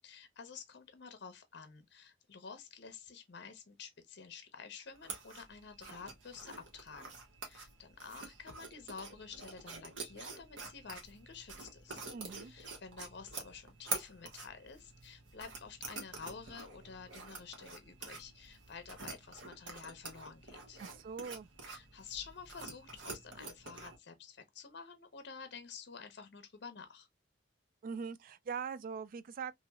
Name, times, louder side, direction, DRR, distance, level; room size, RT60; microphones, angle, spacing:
voice 1, 0.0-7.2 7.4-12.0 12.4-20.8 21.6-27.1, left 5 dB, 65° left, 0.6 m, -50 dB
sound 1, 4.9-24.0, right 4 dB, 85° right, 1.0 m, -47 dB
voice 2, 12.1-12.5 20.8-21.5 27.8-29.5, right 6 dB, 50° right, 0.3 m, -42 dB
2.9 x 2.9 x 2.2 m
head